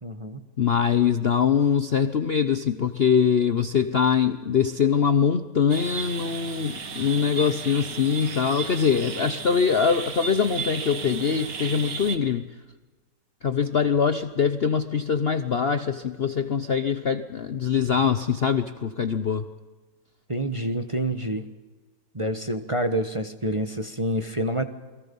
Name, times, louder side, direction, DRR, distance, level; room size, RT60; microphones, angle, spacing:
voice 1, 0.0-0.4 20.3-21.4 22.1-24.6, right 1 dB, 20° right, 6 dB, 1.0 m, -27 dB
voice 2, 0.6-12.5 13.4-19.5, left 7 dB, 50° left, 10 dB, 0.8 m, -23 dB
sound 1, 5.7-12.2, right 6 dB, 75° right, 2.2 m, -35 dB
29.0 x 22.0 x 5.4 m, 1.3 s
omnidirectional pair, 1.9 m